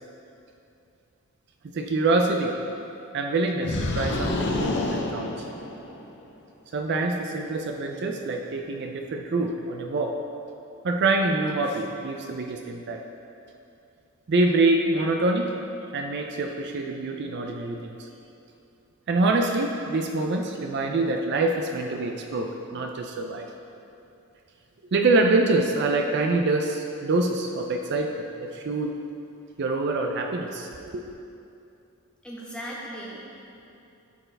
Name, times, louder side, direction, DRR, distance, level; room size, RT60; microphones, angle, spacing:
voice 1, 1.7-2.6 3.1-5.4 6.7-10.1 10.8-13.0 14.3-15.5 15.9-18.1 19.1-23.5 24.9-28.9 29.6-31.0, right 2 dB, 50° right, 3 dB, 0.4 m, -25 dB
sound 1, 3.6-6.1, left 2 dB, 55° left, 0.6 m, -28 dB
voice 2, 32.2-33.5, equal, 5° left, -6 dB, 1.2 m, -38 dB
12.5 x 4.5 x 3.3 m, 2.8 s
head